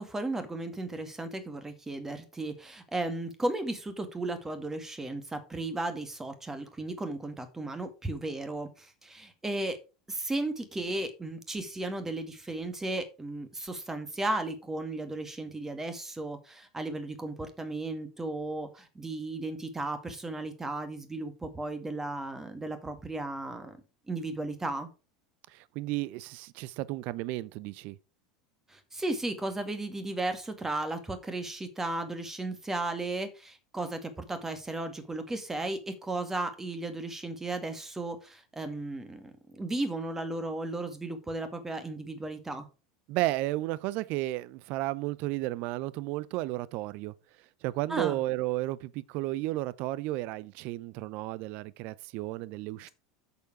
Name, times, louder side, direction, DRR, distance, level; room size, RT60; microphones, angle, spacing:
voice 1, 0.0-9.8 10.1-23.8 24.1-24.9 28.7-42.7 47.9-48.2, right 2 dB, 15° right, 2.1 m, -35 dB
voice 2, 25.5-28.0 43.1-47.1 47.6-52.9, right 17 dB, 50° right, 0.6 m, -33 dB
8.1 x 7.0 x 4.8 m
figure-of-eight pair, 80°, 3 cm